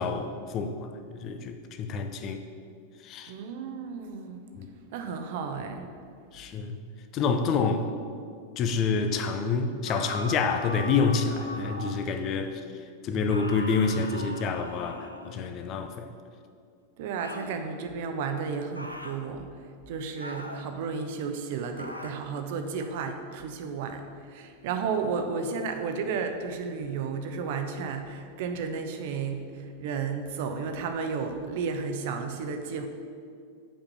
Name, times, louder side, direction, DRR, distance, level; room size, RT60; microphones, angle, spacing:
voice 1, 0.0-2.4 3.0-3.3 4.6-4.7 6.3-6.8 7.1-7.9 8.6-12.6 13.0-16.1, left 5 dB, 35° left, 7 dB, 0.7 m, -28 dB
voice 2, 3.3-4.4 4.9-5.9 17.0-19.5 19.9-32.9, right 5 dB, 50° right, 6 dB, 0.8 m, -33 dB
sound 1, 9.8-12.2 13.3-15.5 17.2-17.6 18.7-19.2 20.2-20.7 21.8-22.2, equal, 90° left, 0.6 m, -40 dB
7.2 x 5.2 x 6.9 m, 2.3 s
figure-of-eight pair, 90°, 0 cm